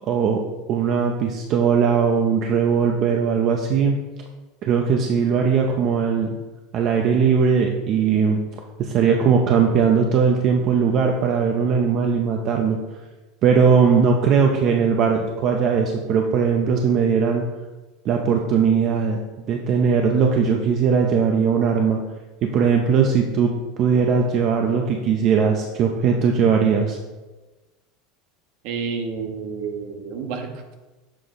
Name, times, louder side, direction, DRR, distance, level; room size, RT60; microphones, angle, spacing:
voice 1, 0.1-0.4 0.7-4.0 4.6-6.4 6.7-8.4 8.8-12.8 13.4-17.5 18.0-22.0 22.4-27.0, right 6 dB, 40° right, 2 dB, 0.5 m, -19 dB
voice 2, 28.6-30.8, right 5 dB, 60° right, 5 dB, 0.8 m, -30 dB
6.8 x 3.4 x 4.0 m, 1.2 s
supercardioid pair, 140°, 0 cm